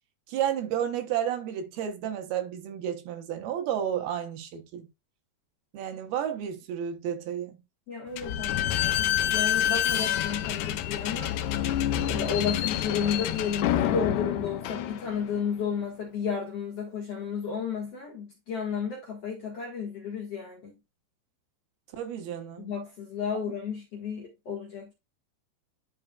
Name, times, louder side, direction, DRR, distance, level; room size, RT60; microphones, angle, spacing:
voice 1, 0.3-4.9 5.7-7.6 21.9-22.7, right 9 dB, 75° right, 3.0 m, -31 dB
voice 2, 7.9-11.4 12.0-20.7 22.6-24.9, left 6 dB, 50° left, 2.2 m, -32 dB
Slam / Squeak, 8.2-15.4, left 11 dB, 85° left, 1.8 m, -28 dB
10.5 x 5.4 x 2.4 m
omnidirectional pair, 4.7 m